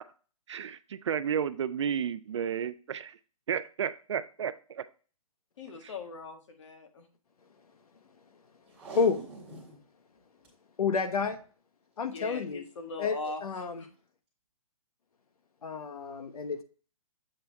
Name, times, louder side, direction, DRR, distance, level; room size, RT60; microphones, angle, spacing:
voice 1, 0.5-3.2 3.5-4.9, right 8 dB, 50° right, 14 dB, 0.4 m, -32 dB
voice 2, 5.6-7.1 12.1-13.4 13.8-13.9, left 3 dB, 55° left, 4 dB, 1.6 m, -40 dB
Packing tape duct tape, 8.7-9.8 10.2-10.3 10.4-10.5 11.1-11.4 12.4-12.7 13.3-13.4, right 2 dB, 5° right, 1.6 m, -45 dB
voice 3, 10.8-11.4 12.0-12.6 13.0-13.8 15.6-16.6, left 5 dB, 85° left, 8 dB, 1.1 m, -30 dB
7.6 x 3.5 x 4.3 m, 0.38 s
hypercardioid pair, 170°, 19 cm